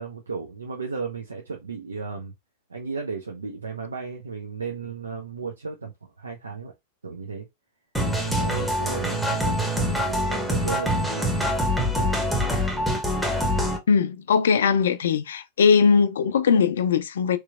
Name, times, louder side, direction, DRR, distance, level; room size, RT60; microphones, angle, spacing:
voice 1, 0.0-2.3 2.7-6.7 7.0-7.5 8.3-11.3 11.9-12.2 13.4-13.8, right 5 dB, 75° right, 0.5 m, -34 dB
sound 1, 7.9-13.8, equal, ahead, 0.8 m, -24 dB
voice 2, 13.9-17.4, left 6 dB, 65° left, 0.4 m, -20 dB
3.3 x 3.0 x 2.4 m
figure-of-eight pair, 90°, 0 cm